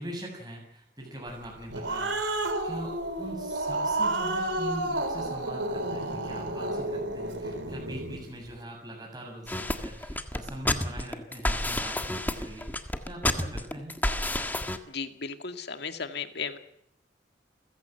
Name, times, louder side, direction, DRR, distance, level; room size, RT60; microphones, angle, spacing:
voice 1, 0.0-12.7 13.0-14.0, right 1 dB, 20° right, 0 dB, 7.4 m, -42 dB
Growling, 1.4-8.2, right 2 dB, 75° right, 3.8 m, -31 dB
sound 1, 9.5-14.8, left 1 dB, 10° left, 1.7 m, -30 dB
voice 2, 14.9-16.6, left 5 dB, 65° left, 8 dB, 2.2 m, -35 dB
29.5 x 15.5 x 8.0 m, 0.76 s
head